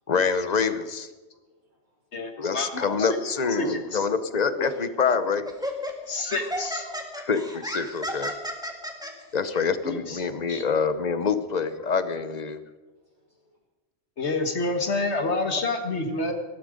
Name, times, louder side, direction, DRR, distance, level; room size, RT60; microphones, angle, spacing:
voice 1, 0.1-1.1 2.4-5.5 7.2-8.3 9.3-12.6, left 5 dB, 40° left, 12 dB, 0.9 m, -26 dB
voice 2, 1.3-2.0 2.3-2.5 5.9-6.4 7.0-7.2 8.7-9.3 12.9-13.6 16.2-16.3, left 1 dB, 55° right, -2 dB, 6.2 m, -66 dB
voice 3, 2.1-3.2 3.6-4.0 4.6-4.7 6.1-6.9 9.8-10.2 10.5-10.6 14.2-16.3, left 2 dB, 65° left, 5 dB, 1.7 m, -28 dB
Laughter, 4.6-4.8 5.5-9.1, equal, 5° right, 1.7 m, -33 dB
18.5 x 13.0 x 5.1 m, 1.2 s
omnidirectional pair, 1.2 m